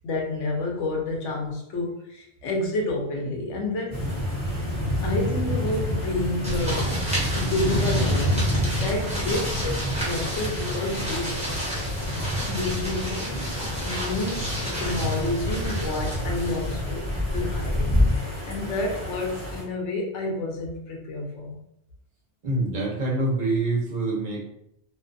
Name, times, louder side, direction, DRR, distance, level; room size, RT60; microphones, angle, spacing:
voice 1, 0.0-4.0 5.0-7.0 7.3-8.5 8.8-11.4 12.5-21.6, left 2 dB, 75° left, 0 dB, 1.0 m, -30 dB
sound 1, 3.9-19.6, equal, 25° left, 1.3 m, -29 dB
sound 2, 6.4-18.1, left 1 dB, 5° right, 0.7 m, -29 dB
voice 2, 22.4-24.4, right 2 dB, 45° right, -3 dB, 0.8 m, -26 dB
2.5 x 2.3 x 2.5 m, 0.78 s
omnidirectional pair, 1.2 m